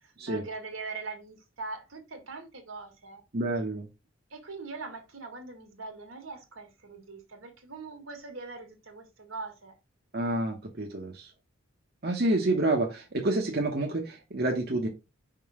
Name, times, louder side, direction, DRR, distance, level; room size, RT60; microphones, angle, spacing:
voice 1, 0.0-3.2 4.3-9.7, right 3 dB, 80° right, 1.8 m, -42 dB
voice 2, 3.3-3.9 10.1-11.3 12.0-14.9, right 2 dB, 50° right, 1.0 m, -28 dB
5.3 x 3.8 x 4.8 m
head